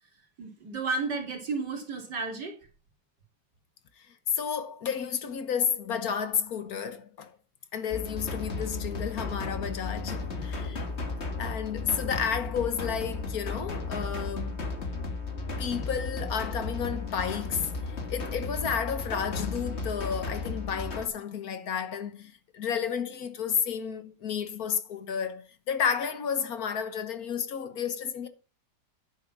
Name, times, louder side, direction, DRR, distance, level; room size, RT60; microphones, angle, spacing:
voice 1, 0.4-2.6, right 4 dB, 80° right, 3.7 m, -32 dB
voice 2, 4.3-7.3 7.7-10.9 11.4-14.7 15.6-17.7 18.1-28.3, left 7 dB, 60° left, 1.6 m, -31 dB
sound 1, 7.9-21.1, left 3 dB, 40° left, 2.0 m, -34 dB
10.5 x 8.6 x 6.0 m
omnidirectional pair, 1.8 m